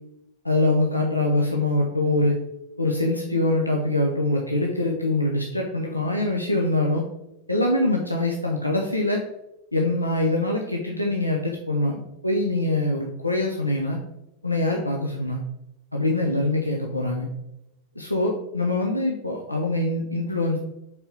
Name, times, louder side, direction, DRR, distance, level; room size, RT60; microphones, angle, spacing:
voice 1, 0.4-2.4 2.8-7.0 7.5-9.2 9.7-14.0 14.4-15.4 15.9-17.3 17.9-20.6, left 2 dB, 85° left, 0 dB, 1.0 m, -24 dB
5.7 x 5.3 x 6.0 m, 0.86 s
figure-of-eight pair, 90°, 0 cm